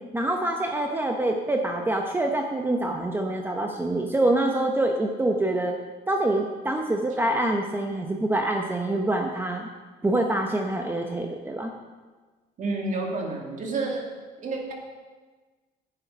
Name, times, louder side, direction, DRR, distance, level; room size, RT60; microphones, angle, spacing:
voice 1, 0.1-5.7 6.1-9.7 10.0-11.7, right 1 dB, 10° right, 2 dB, 0.9 m, -25 dB
voice 2, 12.6-14.0 14.4-14.7, right 3 dB, 50° right, 0 dB, 2.5 m, -29 dB
10.5 x 8.8 x 5.3 m, 1.3 s
cardioid pair, 110°, 17 cm